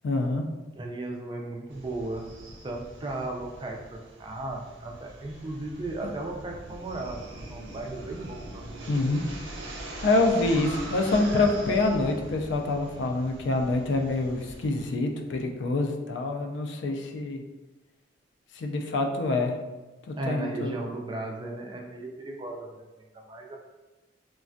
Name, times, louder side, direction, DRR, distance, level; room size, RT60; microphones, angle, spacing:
voice 1, 0.0-0.4 8.9-9.2 10.0-17.4 18.6-19.5 20.1-20.7, left 2 dB, 70° left, 3 dB, 0.4 m, -26 dB
voice 2, 0.7-2.3 2.6-9.1 20.2-23.6, right 2 dB, 25° right, 1 dB, 0.3 m, -36 dB
sound 1, 1.7-14.9, right 1 dB, 85° right, 0.6 m, -42 dB
3.2 x 2.2 x 2.5 m, 1.1 s
head